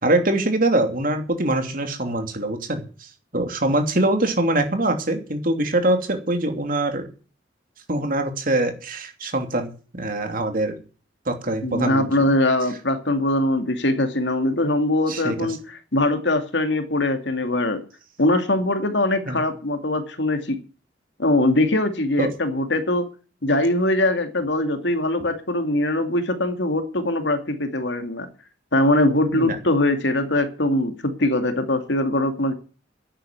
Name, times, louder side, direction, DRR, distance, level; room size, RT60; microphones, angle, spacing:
voice 1, 0.0-7.1 7.9-10.7 11.3-12.3 15.1-15.4 19.3-19.4 22.2-22.3 29.3-29.6, right 1 dB, 50° right, 2.9 m, -23 dB
voice 2, 11.6-15.6 15.9-17.8 18.2-20.6 21.2-23.1 23.4-28.3 28.7-32.5, left 1 dB, 75° left, 2.4 m, -22 dB
11.0 x 9.0 x 9.6 m
head